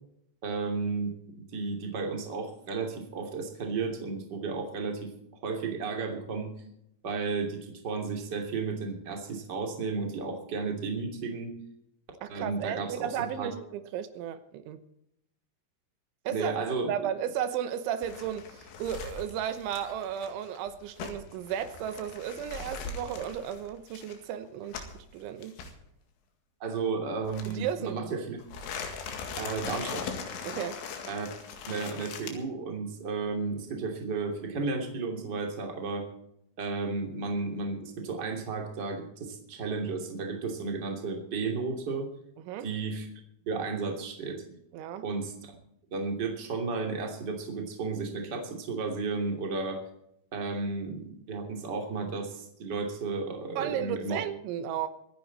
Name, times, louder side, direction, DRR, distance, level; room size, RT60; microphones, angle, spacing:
voice 1, 0.4-1.1 1.5-5.1 5.4-6.5 7.0-11.5 12.3-13.5 16.3-16.9 26.6-28.4 29.4-30.0 31.1-31.3 31.7-36.1 36.6-42.1 42.6-43.1 43.5-44.4 45.0-45.5 45.9-49.8 50.3-54.2, right 4 dB, 25° right, 2.7 m, -33 dB
voice 2, 12.2-14.8 16.3-16.6 16.9-25.6 27.5-28.2 30.4-30.8 42.5-42.7 44.7-45.1 53.6-54.9, right 9 dB, 85° right, 3.5 m, -34 dB
sound 1, 18.0-25.0 25.4-25.7 27.2-27.9 28.4-32.3, left 5 dB, 80° left, 4.4 m, -40 dB
23.5 x 10.5 x 4.2 m
omnidirectional pair, 5.3 m